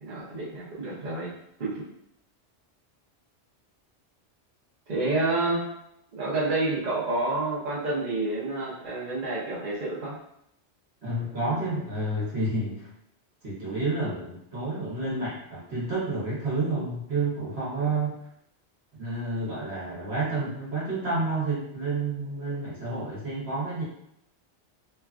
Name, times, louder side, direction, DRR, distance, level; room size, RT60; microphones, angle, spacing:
voice 1, 0.0-1.3 1.6-1.8 4.9-5.7 6.1-10.2 17.8-17.9, right 2 dB, 45° right, -7 dB, 0.8 m, -29 dB
voice 2, 11.0-12.9 13.4-18.1 19.0-23.8, right 2 dB, 65° right, -7 dB, 1.2 m, -30 dB
3.1 x 2.3 x 2.4 m, 0.76 s
omnidirectional pair, 1.2 m